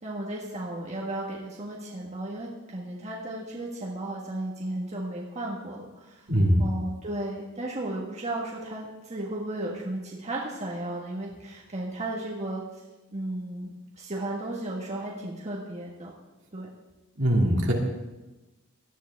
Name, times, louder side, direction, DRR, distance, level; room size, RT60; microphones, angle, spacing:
voice 1, 0.0-6.3 6.6-12.6 13.1-16.1 16.5-16.7, right 1 dB, 30° right, -4 dB, 1.5 m, -34 dB
voice 2, 6.3-6.6 17.2-17.7, equal, 55° right, 0 dB, 2.2 m, -21 dB
17.5 x 11.0 x 3.5 m, 1.1 s
head